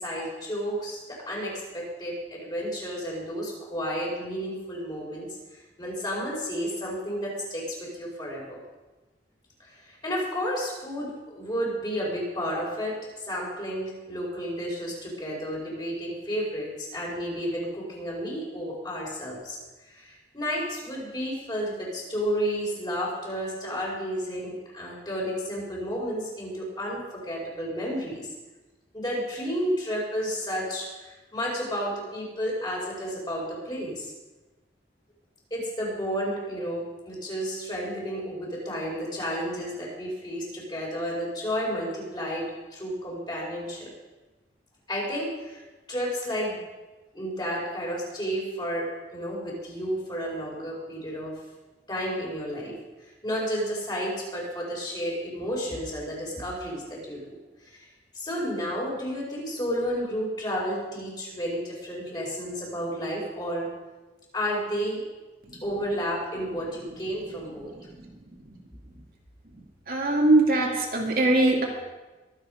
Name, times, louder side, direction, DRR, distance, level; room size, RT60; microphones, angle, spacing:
voice 1, 0.0-8.6 9.6-19.6 19.9-28.3 28.9-34.1 35.5-43.9 44.9-45.6 45.9-46.6 47.1-51.3 51.9-52.7 53.2-57.3 57.6-57.9 58.1-63.7 64.3-65.0 65.6-67.7, equal, 25° left, -3 dB, 5.0 m, -32 dB
voice 2, 69.9-71.6, right 2 dB, 55° right, -1 dB, 2.4 m, -21 dB
23.0 x 8.3 x 5.2 m, 1.2 s
head